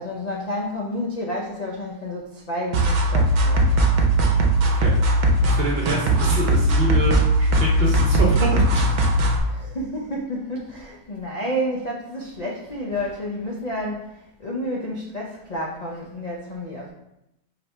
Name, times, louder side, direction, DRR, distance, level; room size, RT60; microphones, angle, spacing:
voice 1, 0.0-3.8 9.4-14.1 14.4-16.9, equal, 65° left, -3 dB, 0.4 m, -30 dB
sound 1, 2.7-9.4, right 1 dB, 75° right, 1.2 m, -19 dB
voice 2, 4.6-5.1 5.4-8.9, right 2 dB, 50° right, -1 dB, 0.9 m, -26 dB
4.7 x 3.3 x 3.3 m, 0.85 s
omnidirectional pair, 1.6 m